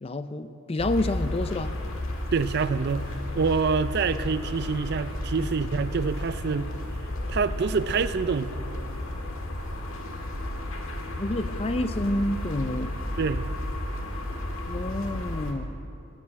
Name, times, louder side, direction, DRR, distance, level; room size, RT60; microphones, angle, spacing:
voice 1, 0.0-1.7 5.4-5.5 11.2-12.9 14.7-15.7, left 1 dB, 25° left, 11 dB, 0.5 m, -29 dB
sound 1, 0.8-15.5, left 1 dB, 70° left, 1.7 m, -33 dB
voice 2, 2.3-6.7 7.3-8.5 13.2-13.4, right 5 dB, 50° right, 13 dB, 0.4 m, -26 dB
15.5 x 7.8 x 9.6 m, 2.7 s
head